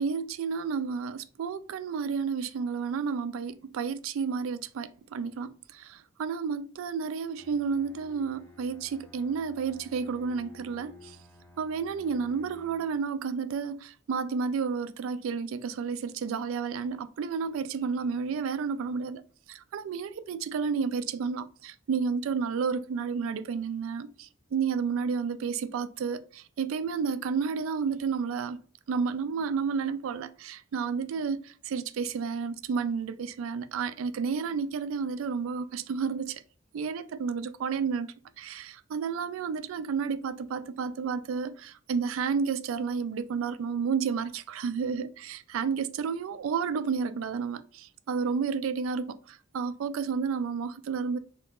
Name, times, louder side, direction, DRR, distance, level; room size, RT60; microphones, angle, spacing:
voice 1, 0.0-11.2 11.6-19.2 19.5-28.6 28.9-36.4 36.7-51.2, right 5 dB, 85° right, 0.3 m, -31 dB
Bowed string instrument, 7.4-13.0, left 2 dB, 10° left, 0.5 m, -53 dB
2.8 x 2.7 x 3.5 m
head